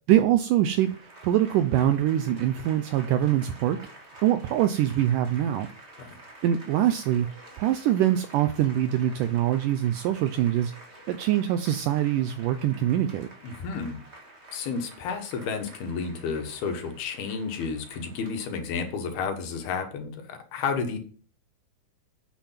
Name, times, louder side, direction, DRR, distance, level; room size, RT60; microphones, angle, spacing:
voice 1, 0.1-0.9 1.2-3.8 4.2-5.7 6.4-7.3 7.6-10.7 11.1-13.3, right 12 dB, 80° right, 10 dB, 1.9 m, -23 dB
Applause / Crowd, 0.7-19.2, right 1 dB, 25° right, 1.7 m, -49 dB
voice 2, 13.4-14.0 14.5-21.0, left 5 dB, 80° left, 5 dB, 3.5 m, -31 dB
9.2 x 7.3 x 5.8 m, 0.43 s
omnidirectional pair, 4.4 m